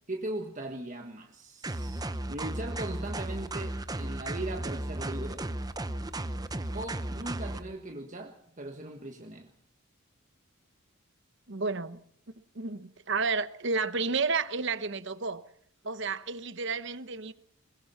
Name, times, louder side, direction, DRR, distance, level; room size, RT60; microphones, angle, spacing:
voice 1, 0.1-5.5 6.7-9.5, right 1 dB, 35° right, 1.5 m, -39 dB
sound 1, 1.6-7.6, right 1 dB, 20° right, 0.8 m, -35 dB
voice 2, 11.5-12.0 12.5-15.5 15.8-17.3, right 4 dB, 55° right, 1.0 m, -31 dB
21.5 x 21.5 x 5.6 m
head